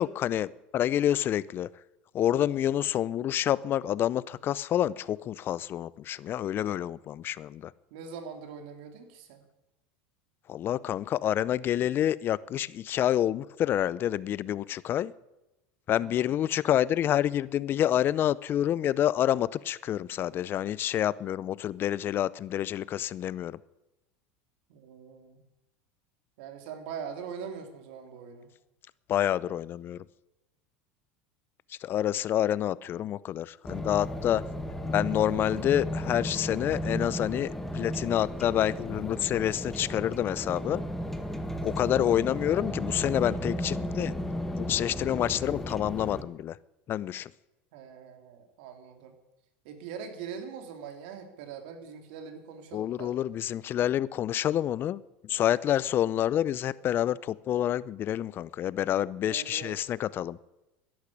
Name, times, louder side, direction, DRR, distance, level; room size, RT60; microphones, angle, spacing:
voice 1, 0.0-1.7 2.1-7.7 10.5-15.1 15.9-23.6 29.1-30.0 31.8-34.4 34.9-40.8 41.6-44.1 44.6-46.6 46.9-47.3 52.7-60.4, left 11 dB, 40° left, 0.6 m, -28 dB
voice 2, 7.9-9.4 15.9-16.3 24.7-25.4 26.4-28.5 41.9-42.3 47.7-49.1 49.6-53.1 59.3-59.8, right 7 dB, 70° right, 3.0 m, -42 dB
sound 1, 33.6-46.2, equal, 5° left, 1.7 m, -34 dB
12.5 x 11.5 x 8.4 m
supercardioid pair, 100°, 6 cm